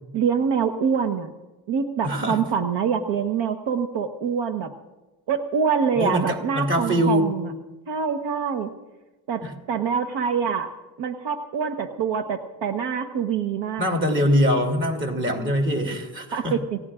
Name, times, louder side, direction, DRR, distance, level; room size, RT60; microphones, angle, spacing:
voice 1, 0.1-1.3 1.7-4.7 5.3-7.5 7.9-8.7 9.3-10.7 11.0-13.9 16.3-16.8, right 6 dB, 75° right, 6 dB, 1.2 m, -25 dB
voice 2, 2.0-2.4 5.9-7.3 9.4-9.5 13.8-16.6, equal, 25° right, 3 dB, 2.8 m, -23 dB
28.0 x 17.0 x 2.5 m, 1.1 s
cardioid pair, 140°, 45 cm